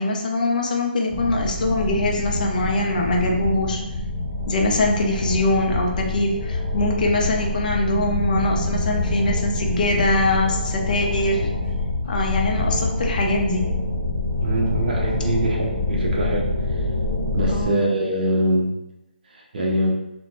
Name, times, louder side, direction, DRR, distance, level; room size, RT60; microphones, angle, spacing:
voice 1, 0.0-3.8 4.5-11.5 12.1-13.7 17.5-17.8, left 2 dB, 50° left, 1 dB, 0.5 m, -23 dB
sound 1, 1.1-17.7, left 2 dB, 15° left, 1.1 m, -26 dB
voice 2, 14.4-16.5 17.3-18.7 19.3-19.9, right 1 dB, 55° right, -1 dB, 0.7 m, -23 dB
2.5 x 2.2 x 2.9 m, 0.90 s
figure-of-eight pair, 150°, 6 cm